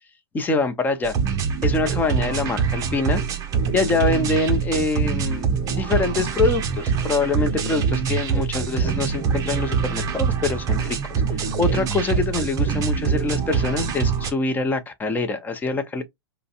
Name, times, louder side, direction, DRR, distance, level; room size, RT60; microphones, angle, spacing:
voice 1, 0.3-1.1 1.6-3.2 3.7-11.0 11.3-16.0, left 3 dB, 15° left, 0.7 m, -24 dB
sound 1, 1.0-14.3, right 6 dB, 25° right, 0.7 m, -24 dB
5.1 x 2.1 x 2.4 m
figure-of-eight pair, 105°, 12 cm